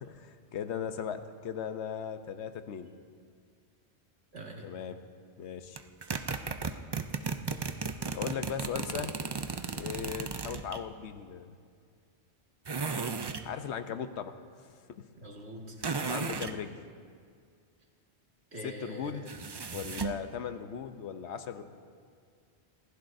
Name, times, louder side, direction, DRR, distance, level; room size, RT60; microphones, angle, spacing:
voice 1, 0.0-2.9 4.6-5.0 5.4-5.8 8.1-9.2 9.7-11.6 13.4-14.3 15.0-15.1 16.0-16.8 18.6-19.3 19.7-21.6, left 8 dB, 85° left, 9 dB, 1.0 m, -38 dB
voice 2, 4.3-4.7 15.2-16.2 18.5-19.3, equal, 70° right, -1 dB, 2.2 m, -43 dB
sound 1, 5.8-10.8 12.7-13.5 15.8-16.6 19.3-20.2, right 5 dB, 40° right, 0.3 m, -35 dB
26.5 x 15.0 x 2.6 m, 2.1 s
omnidirectional pair, 1.1 m